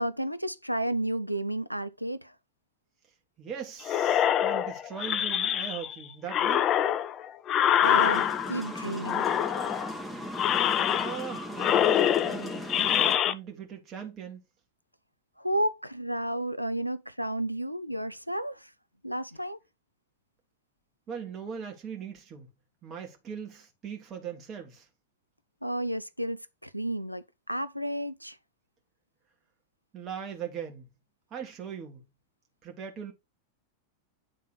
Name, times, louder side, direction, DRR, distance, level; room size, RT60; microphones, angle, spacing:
voice 1, 0.0-2.3 7.8-9.3 15.4-18.7 19.0-19.6 25.6-28.4, right 1 dB, 90° right, 0.4 m, -32 dB
voice 2, 3.4-6.7 11.0-14.4 21.1-22.5 22.8-24.9 29.9-30.8 31.3-32.0 32.6-33.1, right 7 dB, 30° right, 1.7 m, -40 dB
sound 1, 3.9-5.9 6.3-8.7 9.0-9.9 10.3-11.3 11.6-13.3, left 10 dB, 30° left, 0.5 m, -25 dB
sound 2, 7.8-13.2, equal, 5° left, 1.6 m, -38 dB
9.0 x 3.7 x 4.4 m
figure-of-eight pair, 90°, 0 cm